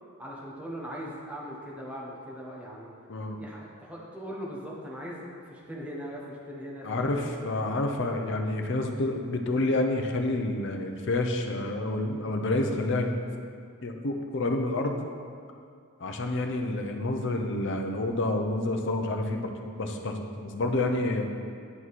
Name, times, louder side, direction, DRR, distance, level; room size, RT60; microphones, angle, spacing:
voice 1, 0.2-2.9 3.4-7.8, equal, 5° right, -5 dB, 1.1 m, -40 dB
voice 2, 3.1-3.4 6.8-13.2 13.8-15.0 16.0-21.2, left 2 dB, 60° left, 3 dB, 0.7 m, -29 dB
9.7 x 4.6 x 4.1 m, 2.3 s
head